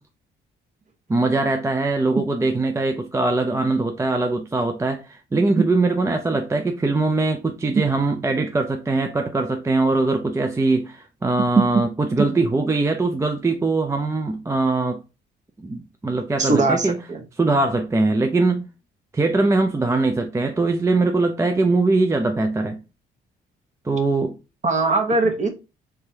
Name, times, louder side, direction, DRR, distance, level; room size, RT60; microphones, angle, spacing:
voice 1, 1.1-15.0 15.6-17.0 17.4-18.7 19.1-22.8 23.8-24.4, right 3 dB, 15° right, 0.4 m, -21 dB
voice 2, 16.4-17.2 24.6-25.5, right 3 dB, 35° right, 1.0 m, -20 dB
3.4 x 3.3 x 2.7 m
cardioid pair, 90°, 20 cm